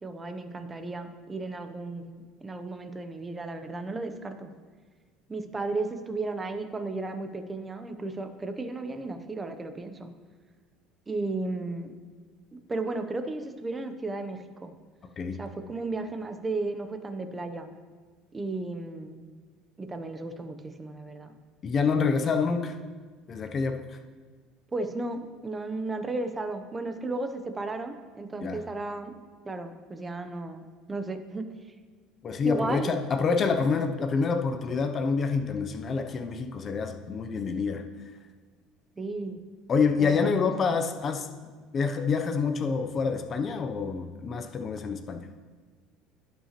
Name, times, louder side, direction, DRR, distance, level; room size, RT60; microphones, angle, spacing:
voice 1, 0.0-4.5 5.3-10.1 11.1-11.9 12.7-14.7 15.4-17.7 18.3-19.2 19.8-21.4 24.7-29.2 29.4-31.4 32.4-32.9 39.0-39.4 40.0-40.3, right 2 dB, 15° right, 8 dB, 0.6 m, -34 dB
voice 2, 21.6-22.8 23.3-24.0 28.4-28.6 32.2-37.8 39.7-41.3 41.7-45.3, left 5 dB, 30° left, 6 dB, 0.5 m, -27 dB
16.0 x 5.6 x 2.9 m, 1.5 s
cardioid pair, 150°, 0 cm